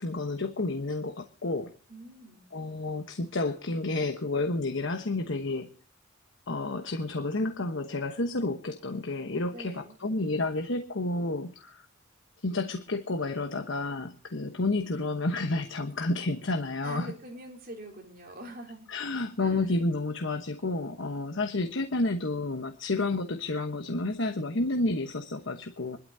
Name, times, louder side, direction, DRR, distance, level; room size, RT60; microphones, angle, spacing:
voice 1, 0.0-1.7 2.5-5.7 6.5-11.9 12.4-17.1 18.9-26.0, left 2 dB, 65° left, 6 dB, 1.1 m, -30 dB
voice 2, 1.9-2.5 9.5-10.0 16.8-18.9 19.4-19.8, right 1 dB, 45° right, 0 dB, 3.8 m, -44 dB
26.0 x 12.0 x 2.7 m, 0.38 s
head